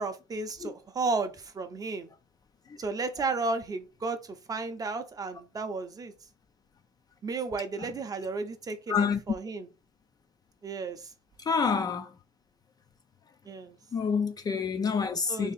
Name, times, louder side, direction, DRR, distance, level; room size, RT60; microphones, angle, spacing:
voice 1, 0.0-2.1 2.8-4.2 4.5-6.1 7.2-9.7 10.6-11.0 13.5-13.7 15.3-15.5, right 3 dB, 25° right, 0.6 m, -33 dB
voice 2, 8.9-9.2 11.5-12.1 13.9-15.5, left 5 dB, 25° left, 0.4 m, -27 dB
2.9 x 2.7 x 4.0 m
supercardioid pair, 100°, 14 cm